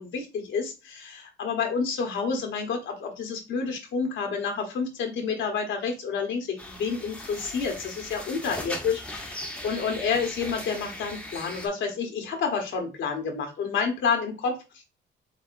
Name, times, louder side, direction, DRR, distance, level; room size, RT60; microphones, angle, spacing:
voice 1, 0.0-14.6, left 5 dB, 70° left, 3 dB, 1.2 m, -29 dB
sound 1, 6.6-11.7, left 1 dB, 5° left, 0.9 m, -38 dB
4.9 x 3.3 x 2.5 m, 0.28 s
cardioid pair, 90°, 20 cm